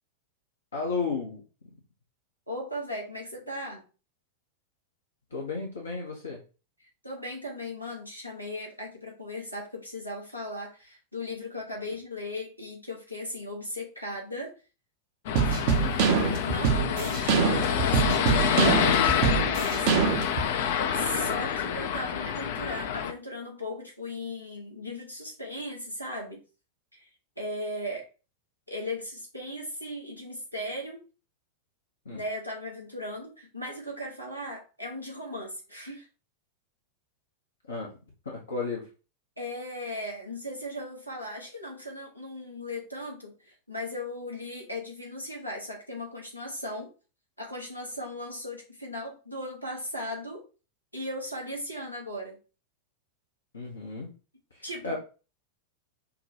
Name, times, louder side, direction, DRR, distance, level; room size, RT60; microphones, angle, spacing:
voice 1, 0.7-1.4 5.3-6.4 15.8-16.0 21.2-21.5 32.0-32.2 37.7-37.9 38.2-38.9 53.5-54.1 54.5-55.0, left 4 dB, 70° left, -1 dB, 0.9 m, -34 dB
voice 2, 2.5-3.8 7.0-14.5 15.4-15.6 16.4-19.9 20.9-26.4 26.9-27.0 27.4-28.0 28.7-31.0 32.1-36.1 39.4-46.9 47.4-50.4 50.9-52.4 54.6-55.0, left 1 dB, 90° left, -1 dB, 1.2 m, -37 dB
sound 1, 15.3-23.1, left 8 dB, 55° left, 0.5 m, -27 dB
sound 2, 15.3-20.5, right 6 dB, 50° right, 0.6 m, -24 dB
5.8 x 2.2 x 2.9 m, 0.34 s
figure-of-eight pair, 90°, 0 cm